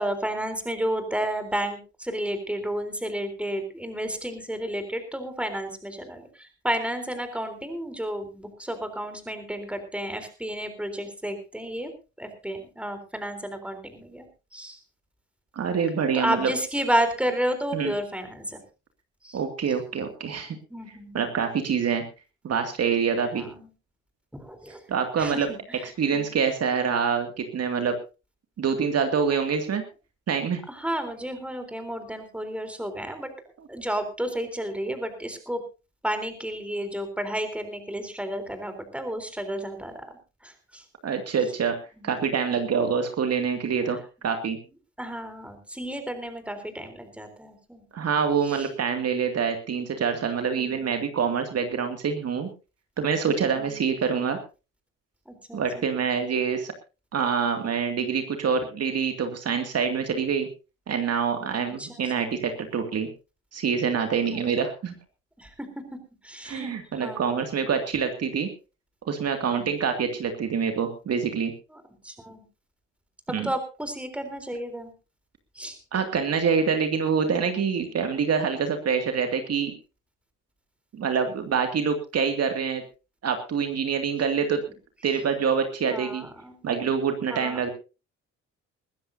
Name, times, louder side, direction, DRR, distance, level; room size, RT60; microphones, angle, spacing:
voice 1, 0.0-11.9 12.2-14.3 14.5-14.8 16.1-18.6 19.2-19.4 20.7-21.3 23.3-23.7 24.3-24.8 25.2-26.4 30.7-33.3 33.7-35.6 36.0-40.1 40.4-40.9 42.0-42.1 42.5-42.8 43.8-44.0 45.0-47.8 48.4-48.7 50.6-50.9 53.6-53.8 55.3-55.9 61.6-62.4 64.3-64.4 65.4-65.7 66.2-67.4 69.5-69.9 71.7-72.4 73.4-74.9 75.5-75.8 85.9-86.7 87.3-87.6, right 1 dB, 5° right, 7 dB, 3.8 m, -32 dB
voice 2, 15.6-16.5 17.7-17.9 19.3-20.6 21.1-22.0 22.4-23.4 24.9-25.5 26.0-28.0 28.6-29.8 30.3-30.6 41.0-41.8 42.0-44.0 44.2-44.6 47.9-52.5 53.0-54.4 55.5-56.7 57.1-60.5 60.9-63.1 63.5-64.9 66.4-68.5 69.1-71.5 73.3-73.5 75.9-79.7 80.9-82.8 83.2-84.6 85.0-86.3 86.6-87.7, right 6 dB, 55° right, 6 dB, 2.4 m, -26 dB
21.5 x 14.5 x 2.7 m, 0.30 s
cardioid pair, 90°, 30 cm